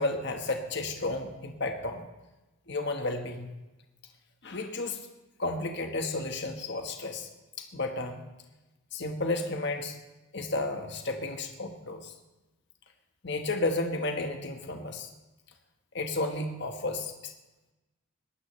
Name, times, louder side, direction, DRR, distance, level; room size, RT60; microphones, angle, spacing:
voice 1, 0.0-2.0 2.7-3.5 4.4-5.0 5.4-7.3 7.6-8.2 8.9-9.9 10.3-12.1 13.2-15.1 15.9-17.3, left 2 dB, 55° left, 4 dB, 1.4 m, -32 dB
20.5 x 15.5 x 3.3 m, 1.1 s
head